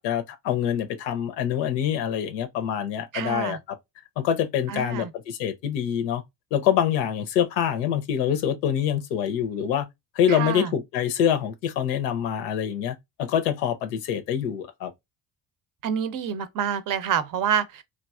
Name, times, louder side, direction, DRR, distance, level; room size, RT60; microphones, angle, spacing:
voice 1, 0.0-3.6 4.2-6.2 6.5-9.9 10.2-14.9, left 9 dB, 80° left, 0.6 m, -25 dB
voice 2, 3.1-3.6 4.7-5.1 10.3-10.7 15.8-17.8, right 8 dB, 40° right, 0.6 m, -27 dB
3.0 x 2.5 x 2.3 m
hypercardioid pair, 50°, 49 cm